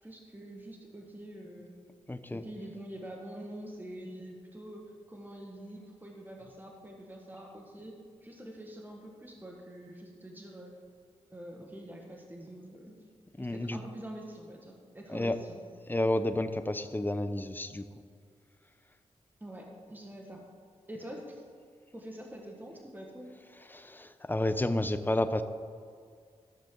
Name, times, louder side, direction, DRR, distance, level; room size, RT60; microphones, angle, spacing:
voice 1, 0.0-1.7 2.3-8.0 8.2-10.7 11.3-13.0 13.4-15.6 19.4-20.4 20.9-21.4 21.9-23.4, right 1 dB, 15° right, 0 dB, 1.7 m, -45 dB
voice 2, 2.1-2.4 13.4-13.8 15.1-15.4 15.9-17.9 23.6-25.4, left 1 dB, 15° left, 10 dB, 0.7 m, -31 dB
15.0 x 6.7 x 3.9 m, 2.1 s
cardioid pair, 45°, 13 cm